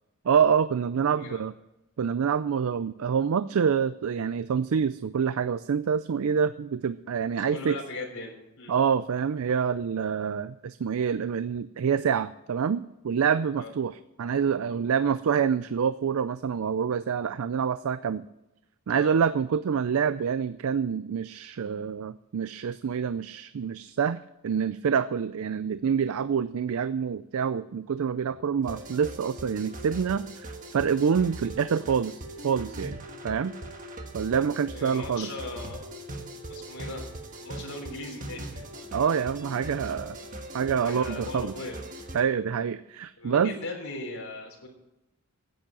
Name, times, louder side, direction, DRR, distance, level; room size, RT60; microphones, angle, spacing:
voice 1, 0.2-1.5 2.0-7.8 8.7-13.9 14.2-18.2 18.9-33.0 33.2-33.5 34.1-35.3 38.9-40.2 40.5-41.5 42.1-43.5, right 7 dB, 70° right, 14 dB, 0.4 m, -26 dB
voice 2, 7.4-8.7 13.6-13.7 18.9-19.2 34.7-35.9 36.5-37.1 37.4-38.7 40.8-41.8 43.2-44.7, left 2 dB, 75° left, 0 dB, 3.6 m, -38 dB
sound 1, 28.6-42.2, right 1 dB, 35° right, 1.4 m, -40 dB
10.5 x 8.6 x 9.0 m, 0.89 s
head